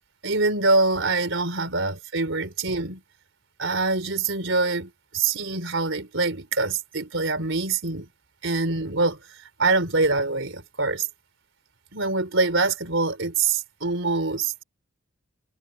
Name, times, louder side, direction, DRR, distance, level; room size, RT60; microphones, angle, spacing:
voice 1, 0.2-3.0 3.6-8.1 8.4-9.2 9.6-11.1 11.9-14.5, right 3 dB, 65° right, 4.0 m, -24 dB
head